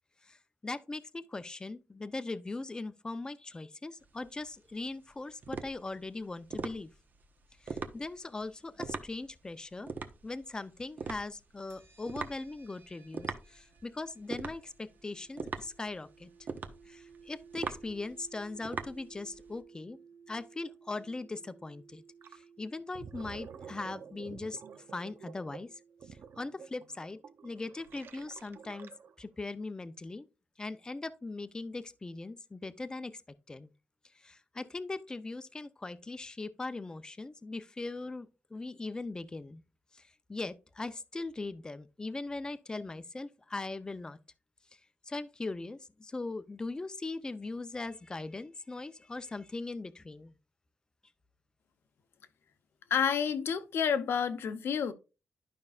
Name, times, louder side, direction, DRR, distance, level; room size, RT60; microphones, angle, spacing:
voice 1, 0.6-6.9 7.6-9.9 10.2-16.3 16.9-20.0 20.3-22.0 22.6-24.6 24.9-25.7 26.4-28.9 29.2-30.3 30.6-33.2 33.5-33.7 34.2-39.6 40.3-44.2 45.1-50.3, left 3 dB, 20° left, 0.6 m, -40 dB
sound 1, 4.0-19.6, right 5 dB, 50° right, 0.9 m, -42 dB
sound 2, 11.7-26.7, right 6 dB, 85° right, 2.1 m, -58 dB
Gurgling, 22.2-22.4 22.8-29.3, right 7 dB, 70° right, 0.6 m, -50 dB
voice 2, 52.9-54.9, left 7 dB, 80° left, 0.8 m, -29 dB
12.0 x 5.4 x 2.4 m
wide cardioid pair, 130°, 4 cm